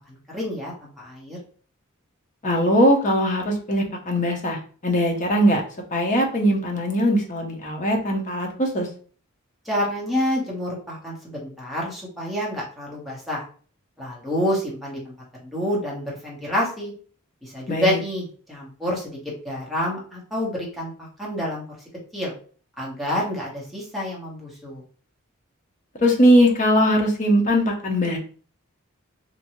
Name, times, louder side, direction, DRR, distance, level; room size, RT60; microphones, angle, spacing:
voice 1, 0.1-1.4 9.6-13.4 14.0-15.1 15.4-16.9 17.4-19.2 19.4-21.6 22.1-22.3 22.8-24.8, equal, ahead, -6 dB, 0.9 m, -28 dB
voice 2, 2.4-5.6 5.9-8.9 17.7-18.0 26.0-28.2, equal, 35° left, 1 dB, 0.6 m, -20 dB
2.6 x 2.2 x 2.9 m, 0.42 s
head